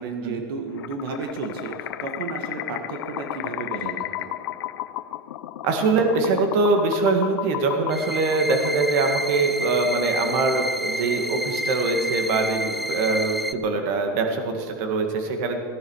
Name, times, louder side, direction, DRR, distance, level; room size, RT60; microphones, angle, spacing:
voice 1, 0.0-4.4, right 4 dB, 80° right, 5 dB, 1.8 m, -33 dB
sound 1, 0.7-9.2, left 13 dB, 80° left, 0.7 m, -33 dB
voice 2, 5.6-15.6, right 3 dB, 45° right, 4 dB, 2.0 m, -23 dB
sound 2, 7.9-13.5, equal, ahead, 0.3 m, -29 dB
18.0 x 15.0 x 4.8 m, 2.1 s
supercardioid pair, 165°, 12 cm